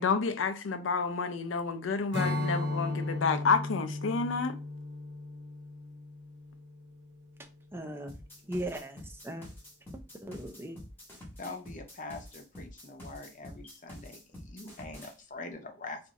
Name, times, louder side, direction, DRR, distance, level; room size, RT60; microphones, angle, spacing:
voice 1, 0.0-4.6, left 5 dB, 85° left, 0.5 m, -29 dB
Strum, 2.1-7.5, left 2 dB, 65° right, 1.0 m, -36 dB
voice 2, 7.7-9.5 10.2-10.8, right 1 dB, 10° right, 0.4 m, -38 dB
sound 1, 8.1-15.1, left 1 dB, 10° left, 1.0 m, -47 dB
voice 3, 11.4-16.0, left 3 dB, 40° left, 0.6 m, -44 dB
2.6 x 2.4 x 3.9 m
head